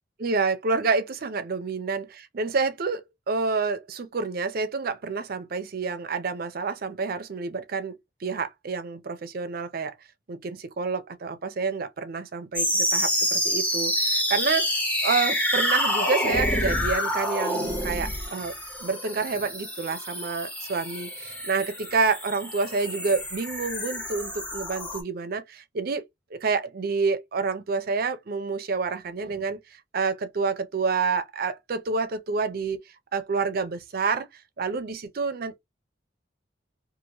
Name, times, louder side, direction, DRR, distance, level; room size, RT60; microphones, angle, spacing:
voice 1, 0.2-9.9 10.3-14.7 15.0-18.5 18.8-26.0 26.3-29.6 29.9-32.8 33.1-34.3 34.6-35.6, right 4 dB, 50° right, 0.5 m, -28 dB
sound 1, 12.5-25.0, equal, 10° left, 0.8 m, -28 dB
2.9 x 2.4 x 2.8 m
head